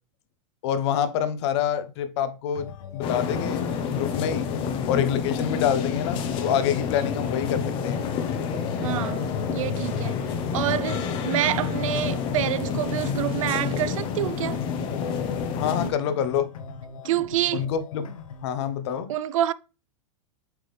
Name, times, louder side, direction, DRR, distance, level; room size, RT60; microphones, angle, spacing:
voice 1, 0.6-3.6 3.9-4.5 4.9-8.0 15.5-16.5 17.5-18.1 18.4-19.1, left 9 dB, 55° left, 1.0 m, -26 dB
sound 1, 2.5-18.5, left 7 dB, 85° left, 1.3 m, -40 dB
sound 2, 3.0-15.9, left 6 dB, 30° left, 1.0 m, -29 dB
voice 2, 8.8-10.2 10.5-14.6 17.0-17.7 19.1-19.5, right 12 dB, 75° right, 0.5 m, -27 dB
8.1 x 3.8 x 3.3 m
supercardioid pair, 150°, 17 cm